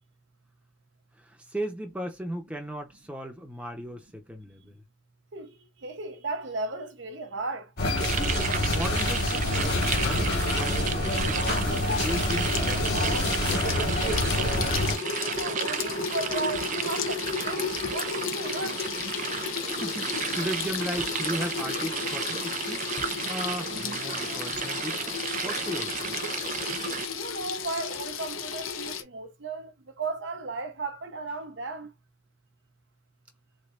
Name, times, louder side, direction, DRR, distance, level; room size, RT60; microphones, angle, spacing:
voice 1, 1.2-4.8 8.7-13.2 13.5-14.2 19.8-22.8 23.2-25.0 25.4-26.1, equal, 5° right, 0.8 m, -36 dB
voice 2, 5.8-7.7 15.2-18.8 27.1-31.9, right 3 dB, 60° right, 0.7 m, -35 dB
sound 1, 7.8-14.9, left 2 dB, 50° left, 1.8 m, -27 dB
sound 2, 8.0-27.1, right 7 dB, 35° right, 0.4 m, -33 dB
Water tap faucet / Sink (filling or washing), 12.0-29.0, left 6 dB, 85° left, 0.9 m, -34 dB
3.9 x 3.3 x 2.5 m
head